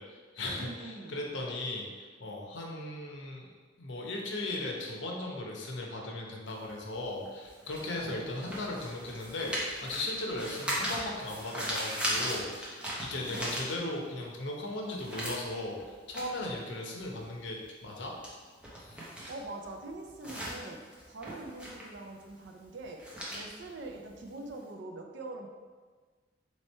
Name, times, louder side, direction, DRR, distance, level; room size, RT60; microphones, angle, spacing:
voice 1, 0.0-1.9 2.2-3.5 3.8-15.8 16.1-18.1 18.8-19.1, left 2 dB, 85° left, -1 dB, 0.8 m, -37 dB
voice 2, 0.6-1.2 8.0-8.4 10.3-10.6 13.2-13.6 19.3-23.0 23.3-25.5, right 2 dB, 75° right, 3 dB, 0.5 m, -44 dB
sound 1, 6.5-14.2 14.6-24.6, equal, 5° right, 0.7 m, -38 dB
3.3 x 3.1 x 4.3 m, 1.5 s
head